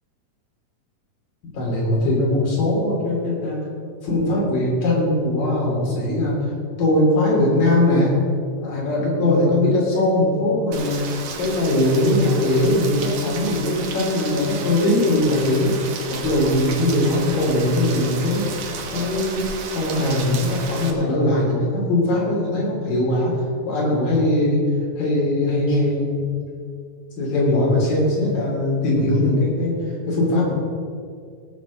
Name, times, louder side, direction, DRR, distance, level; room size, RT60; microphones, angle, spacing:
voice 1, 1.5-3.6 4.0-6.3 6.8-8.1 8.6-11.1 11.4-15.7 16.2-23.3 23.6-24.6 25.0-26.3 27.2-29.7 30.0-30.5, left 1 dB, 70° left, -3 dB, 4.8 m, -20 dB
Rain, 10.7-20.9, right 5 dB, 60° right, 2.1 m, -33 dB
17.0 x 6.4 x 6.3 m, 2.2 s
omnidirectional pair, 4.1 m